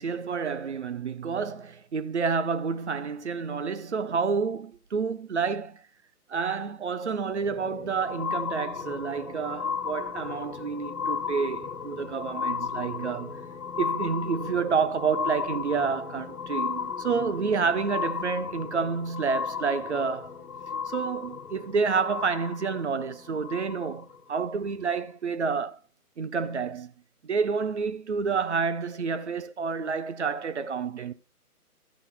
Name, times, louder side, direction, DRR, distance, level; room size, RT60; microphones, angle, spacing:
voice 1, 0.0-5.8 6.3-13.4 13.8-20.3 20.9-25.8 26.2-26.9 27.2-31.1, right 5 dB, 45° right, 0.9 m, -29 dB
sound 1, 7.3-24.2 24.9-25.0, left 6 dB, 75° left, 1.5 m, -35 dB
13.5 x 5.3 x 4.3 m
figure-of-eight pair, 145°, 46 cm